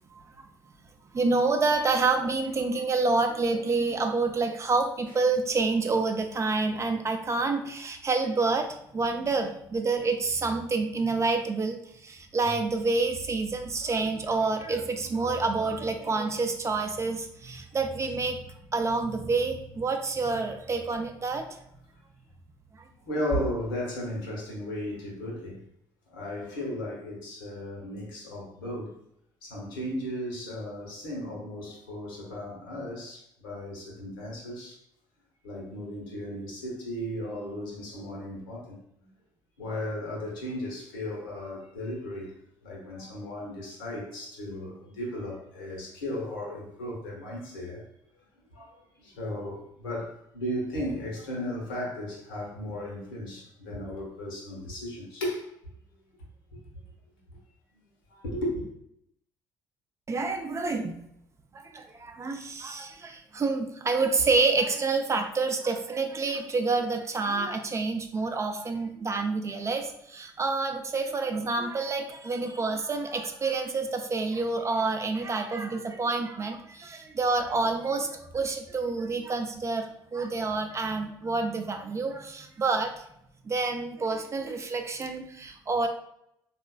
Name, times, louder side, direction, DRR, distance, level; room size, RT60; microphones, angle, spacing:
voice 1, 1.1-8.7 8.9-18.4 18.7-21.4 60.1-61.0 61.5-83.0 83.5-85.9, right 3 dB, 25° right, 5 dB, 0.4 m, -28 dB
voice 2, 23.0-25.6 26.1-28.9 29.4-34.8 35.4-39.1 39.6-42.3 42.6-47.8 48.5-55.5 56.5-56.6 58.1-58.7, left 1 dB, 75° left, -2 dB, 0.9 m, -35 dB
3.8 x 2.3 x 2.2 m, 0.75 s
figure-of-eight pair, 50°, 11 cm